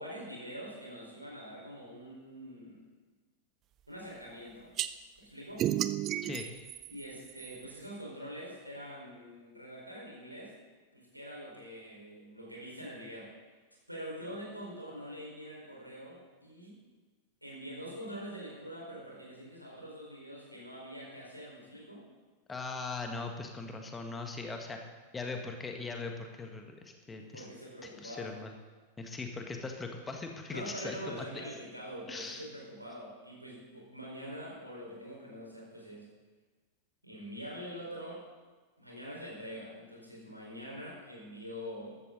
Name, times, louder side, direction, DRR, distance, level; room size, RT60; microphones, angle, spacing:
voice 1, 0.0-2.8 3.9-4.7 5.2-5.7 6.9-10.5 10.9-13.3 13.9-16.8 17.4-22.0 27.2-28.3 30.5-36.1 37.0-38.2 38.8-42.0, equal, 90° right, -3 dB, 4.7 m, -44 dB
sound 1, 4.8-4.9 5.6-7.8, right 12 dB, 35° right, 0.5 m, -33 dB
voice 2, 22.5-24.8 25.1-27.5 28.0-28.5 29.0-31.3 32.1-32.4, left 3 dB, 15° left, 4 dB, 1.7 m, -40 dB
14.5 x 13.0 x 4.0 m, 1.3 s
figure-of-eight pair, 90°, 0 cm